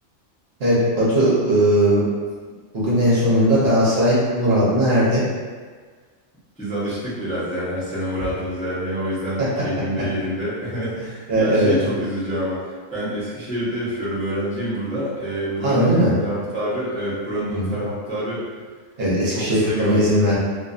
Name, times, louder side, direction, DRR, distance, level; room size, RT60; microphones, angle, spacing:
voice 1, 0.6-2.0 2.7-5.2 9.4-9.5 11.3-11.8 15.6-16.1 17.5-17.8 19.0-20.4, equal, 60° right, -8 dB, 0.9 m, -18 dB
voice 2, 6.6-15.9 16.2-18.5 19.3-20.1, equal, 10° left, -12 dB, 0.6 m, -27 dB
2.5 x 2.3 x 2.3 m, 1.5 s
omnidirectional pair, 1.3 m